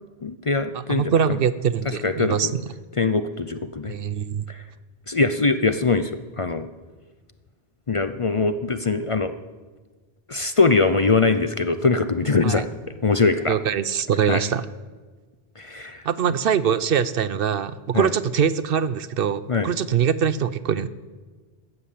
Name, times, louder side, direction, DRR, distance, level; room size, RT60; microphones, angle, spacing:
voice 1, 0.2-1.1 1.9-2.5 3.0-3.9 4.5-4.6 5.1-6.7 7.9-9.3 10.3-12.7 13.0-13.6 14.3-14.4 15.6-16.0 17.9-18.1 19.5-19.7, left 4 dB, 40° left, 10 dB, 0.6 m, -22 dB
voice 2, 0.7-2.6 3.9-4.4 12.4-12.6 13.5-14.7 16.0-20.9, right 7 dB, 65° right, 16 dB, 0.8 m, -23 dB
15.0 x 12.5 x 7.5 m, 1.4 s
omnidirectional pair, 1.1 m